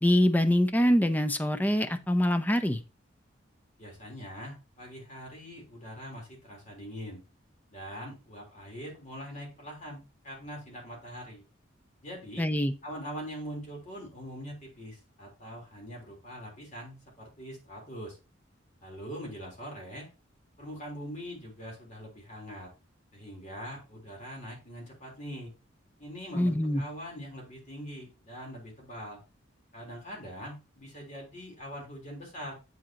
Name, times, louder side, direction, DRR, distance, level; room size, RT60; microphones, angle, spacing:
voice 1, 0.0-2.8 12.4-12.7 26.3-26.8, equal, 10° left, 9 dB, 0.6 m, -24 dB
voice 2, 3.8-7.2 7.7-11.4 12.0-12.4 12.8-18.2 18.8-20.1 20.6-22.7 23.1-25.5 26.0-29.2 29.7-32.5, equal, 40° left, -1 dB, 3.6 m, -42 dB
8.3 x 7.6 x 2.9 m, 0.29 s
head